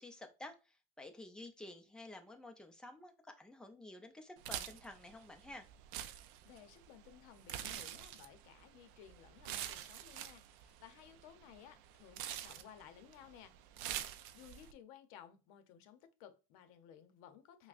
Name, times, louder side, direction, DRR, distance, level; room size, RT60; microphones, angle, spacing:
voice 1, 0.0-5.7, left 2 dB, 5° left, 0.4 m, -52 dB
sound 1, 4.4-14.7, right 11 dB, 65° right, 0.4 m, -47 dB
voice 2, 6.4-13.5 14.3-17.7, left 9 dB, 75° left, 0.7 m, -58 dB
5.8 x 2.1 x 2.4 m
cardioid pair, 150°, 18 cm